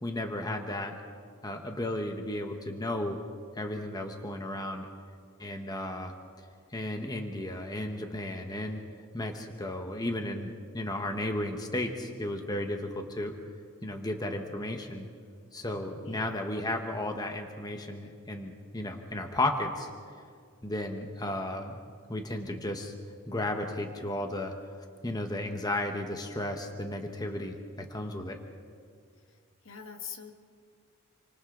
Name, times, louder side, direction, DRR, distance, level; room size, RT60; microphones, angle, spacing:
voice 1, 0.0-1.0 1.4-3.2 3.5-4.9 5.4-6.1 6.7-8.8 9.1-13.4 13.8-15.1 15.5-19.9 20.6-21.8 22.1-22.9 23.3-24.5 25.0-28.4, left 1 dB, 20° left, 4 dB, 1.3 m, -34 dB
voice 2, 16.0-16.5 29.6-30.3, left 6 dB, 60° left, 5 dB, 1.7 m, -43 dB
28.5 x 25.0 x 3.9 m, 2.1 s
head